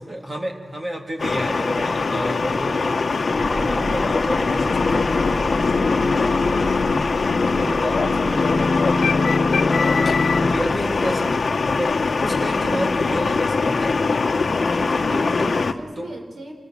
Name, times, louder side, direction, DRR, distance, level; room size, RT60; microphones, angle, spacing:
voice 1, 0.1-3.0 3.5-5.8 6.2-6.9 7.5-8.1 10.3-11.5 11.8-14.2 15.1-15.7 16.0-16.1, equal, 30° right, 2 dB, 3.1 m, -31 dB
sound 1, 1.2-15.7, left 4 dB, 60° left, 1.2 m, -22 dB
sound 2, 3.3-14.0, left 1 dB, 10° left, 1.5 m, -34 dB
sound 3, 4.7-5.3 5.6-10.7, left 4 dB, 80° left, 1.1 m, -23 dB
voice 2, 6.5-7.1 7.5-8.6 14.8-16.5, right 1 dB, 80° right, 2 dB, 5.1 m, -37 dB
27.0 x 20.0 x 7.8 m, 1.4 s
wide cardioid pair, 115°, 0 cm